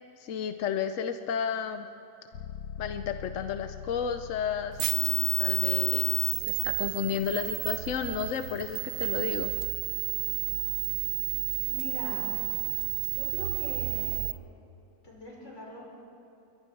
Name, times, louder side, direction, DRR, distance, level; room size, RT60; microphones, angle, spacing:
voice 1, 0.2-1.9 2.8-9.5, left 7 dB, 60° left, 8 dB, 0.9 m, -32 dB
sound 1, 2.3-10.1, left 8 dB, 85° left, 1.7 m, -45 dB
sound 2, 4.8-14.3, right 8 dB, 60° right, 1.0 m, -30 dB
voice 2, 11.7-12.3 13.1-14.2 15.0-15.8, left 1 dB, 40° left, -3 dB, 6.2 m, -44 dB
28.0 x 23.0 x 4.6 m, 2.8 s
omnidirectional pair, 2.0 m